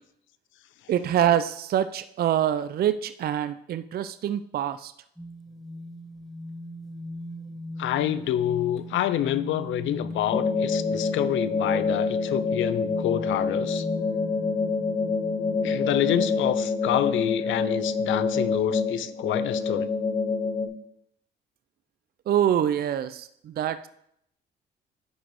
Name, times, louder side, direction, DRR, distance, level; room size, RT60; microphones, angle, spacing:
voice 1, 0.9-4.9 22.3-23.9, right 10 dB, 50° right, 12 dB, 0.4 m, -25 dB
sound 1, 5.2-16.4, left 1 dB, ahead, 1.7 m, -39 dB
voice 2, 7.8-13.8 15.6-19.9, left 11 dB, 75° left, 14 dB, 0.5 m, -27 dB
sound 2, 10.3-20.7, left 4 dB, 30° left, 1.3 m, -27 dB
10.5 x 4.0 x 4.7 m, 0.72 s
cardioid pair, 90°, 20 cm